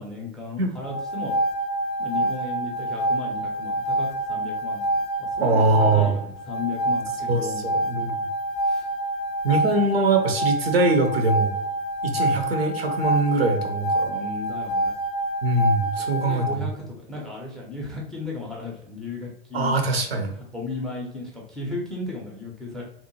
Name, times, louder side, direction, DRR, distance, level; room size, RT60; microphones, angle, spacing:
voice 1, 0.0-1.4 2.0-4.8 5.2-7.9 8.6-8.8 14.1-14.9 16.0-19.8 20.5-22.8, left 3 dB, ahead, -2 dB, 0.4 m, -35 dB
sound 1, 0.8-16.6, right 1 dB, 55° left, 0.5 m, -27 dB
voice 2, 5.4-6.1 7.3-8.2 9.4-11.6 12.0-14.2 15.4-16.7 19.5-20.3, right 2 dB, 75° right, 5 dB, 0.6 m, -22 dB
2.7 x 2.1 x 2.8 m, 0.71 s
figure-of-eight pair, 90°, 31 cm